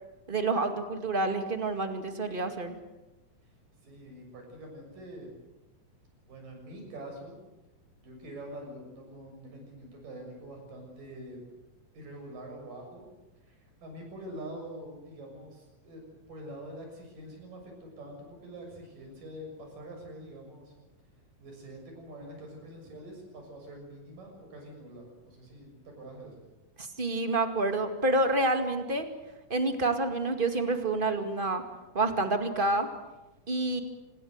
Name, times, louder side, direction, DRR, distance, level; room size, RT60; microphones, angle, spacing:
voice 1, 0.3-2.7 26.8-29.0 29.5-31.6 31.9-32.9 33.5-33.8, right 2 dB, 20° right, 6 dB, 1.5 m, -28 dB
voice 2, 3.8-5.3 6.3-7.4 8.0-11.4 11.9-13.0 13.4-16.0 16.3-20.8 21.4-26.4, right 1 dB, 70° right, 2 dB, 8.4 m, -45 dB
26.0 x 19.5 x 8.1 m, 1.0 s
omnidirectional pair, 4.0 m